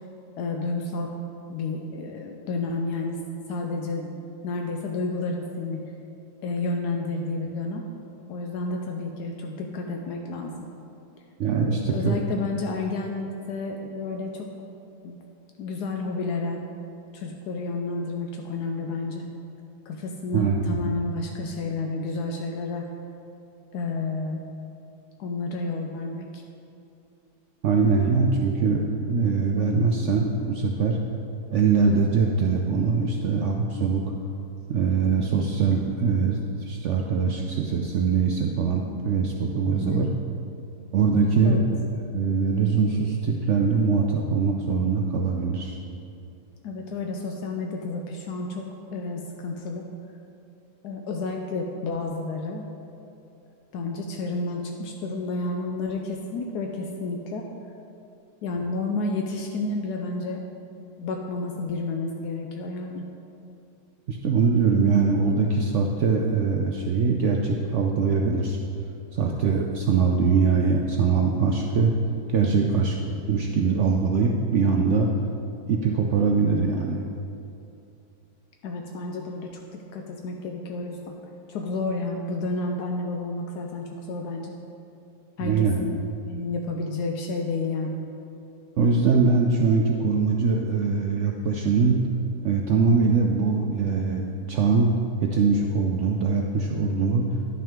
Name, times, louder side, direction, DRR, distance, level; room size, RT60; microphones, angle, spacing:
voice 1, 0.4-1.1 1.5-3.2 3.5-4.2 4.4-5.8 6.4-7.8 8.3-10.5 11.7-14.5 15.0-15.2 15.6-16.6 17.1-19.3 19.9-22.8 23.7-24.4 25.2-26.4 39.7-40.1 41.4-41.6 46.6-49.9 50.8-52.6 53.7-57.5 58.4-60.4 61.0-63.1 78.6-79.5 79.9-81.1 81.5-84.6 85.4-86.0 86.3-88.0, left 3 dB, 80° left, 2 dB, 1.1 m, -30 dB
voice 2, 11.4-12.2 20.3-20.8 27.6-31.0 31.5-34.0 34.7-40.1 40.9-41.6 42.1-45.8 64.1-68.6 69.1-72.0 72.3-73.0 73.3-75.1 75.7-77.0 85.4-85.8 88.8-92.0 92.4-95.0 95.2-97.3, right 5 dB, 75° right, 1 dB, 0.6 m, -22 dB
10.5 x 5.9 x 3.6 m, 2.7 s
omnidirectional pair, 1.7 m